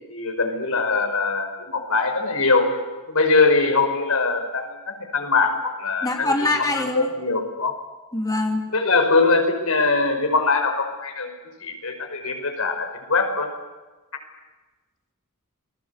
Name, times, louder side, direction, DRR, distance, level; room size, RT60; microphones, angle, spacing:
voice 1, 0.1-2.7 3.1-7.7 8.7-11.3 11.6-13.5, left 3 dB, 80° left, 6 dB, 5.2 m, -22 dB
voice 2, 6.0-7.1 8.1-8.7, left 2 dB, 15° left, 1 dB, 3.1 m, -23 dB
28.5 x 20.5 x 8.3 m, 1.2 s
head